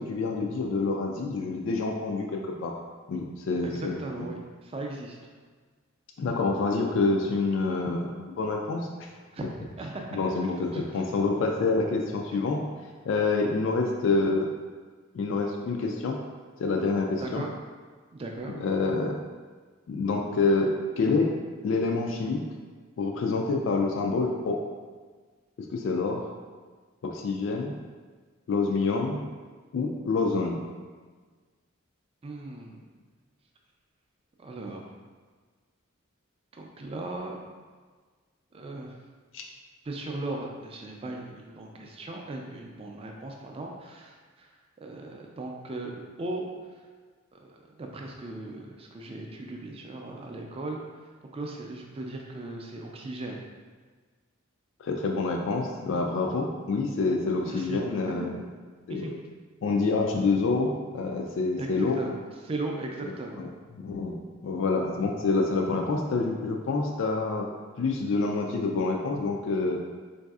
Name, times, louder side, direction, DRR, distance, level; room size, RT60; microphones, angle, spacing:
voice 1, 0.0-2.8 3.1-4.3 6.2-9.1 10.1-12.6 13.1-14.5 15.1-16.2 16.6-17.4 18.5-19.2 19.9-21.3 21.6-22.4 23.0-24.6 25.6-26.3 27.0-27.7 28.5-29.2 29.7-30.6 39.3-39.4 54.8-58.3 58.9-59.2 59.6-62.0 63.0-63.1 63.4-63.5 63.7-67.5 67.8-69.8, left 3 dB, 60° left, 2 dB, 0.3 m, -27 dB
voice 2, 3.6-5.2 9.3-9.5 9.8-10.0 10.7-11.0 17.2-17.5 18.1-18.5 32.2-32.8 34.4-34.8 36.5-37.3 38.5-38.9 39.9-44.5 44.8-46.4 47.3-50.8 51.3-53.4 57.4-57.8 58.1-58.2 58.9-59.1 61.6-62.2 62.4-63.4, right 2 dB, 25° right, 1 dB, 0.3 m, -37 dB
3.9 x 2.6 x 2.3 m, 1.5 s
head